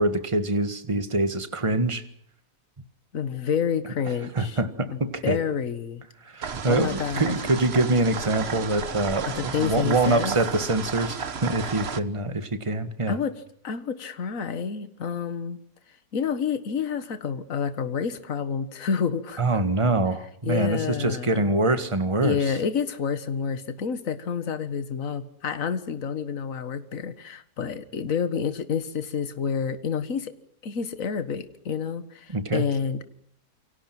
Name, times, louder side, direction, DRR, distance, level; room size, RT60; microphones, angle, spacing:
voice 1, 0.0-2.0 4.3-5.4 6.2-13.2 19.4-22.6 32.3-32.6, right 2 dB, 20° right, 10 dB, 1.7 m, -25 dB
voice 2, 3.1-4.6 4.9-6.0 6.7-7.4 9.3-10.4 13.1-15.6 16.1-19.4 20.4-21.5 22.2-30.4 30.6-33.0, left 6 dB, 55° left, 11 dB, 1.9 m, -29 dB
sound 1, 6.4-12.0, right 6 dB, 45° right, 1.3 m, -33 dB
28.5 x 24.5 x 6.1 m, 0.67 s
omnidirectional pair, 1.7 m